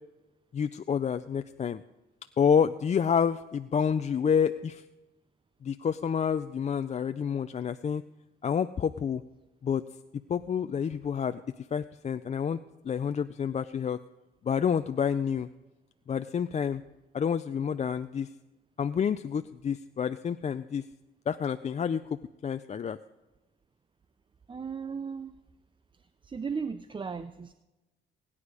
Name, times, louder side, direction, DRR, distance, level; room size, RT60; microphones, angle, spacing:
voice 1, 0.5-1.8 2.4-4.8 5.6-8.0 8.4-9.2 9.6-9.8 10.3-11.4 11.7-12.6 12.8-14.0 14.4-15.5 16.1-16.8 17.1-18.3 18.8-20.8 21.3-22.0 22.4-23.0, left 7 dB, 35° left, 10 dB, 0.4 m, -28 dB
voice 2, 24.5-25.4 26.2-27.5, right 5 dB, 25° right, 12 dB, 0.5 m, -36 dB
19.0 x 9.8 x 4.9 m, 1.0 s
cardioid pair, 90°, 20 cm